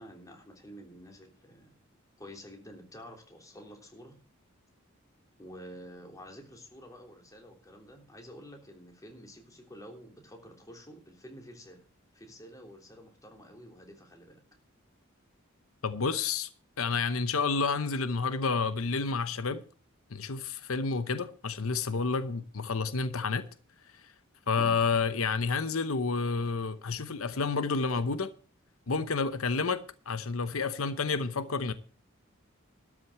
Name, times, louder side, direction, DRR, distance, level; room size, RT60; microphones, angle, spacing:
voice 1, 0.0-1.7 2.2-4.2 5.4-11.8 12.1-14.4 24.6-24.8, equal, 15° left, 3.3 m, -49 dB
voice 2, 15.8-16.5 16.8-19.6 20.1-23.5 24.0-24.1 24.5-28.3 28.9-31.7, left 4 dB, 85° left, 0.9 m, -30 dB
13.0 x 6.1 x 7.9 m
head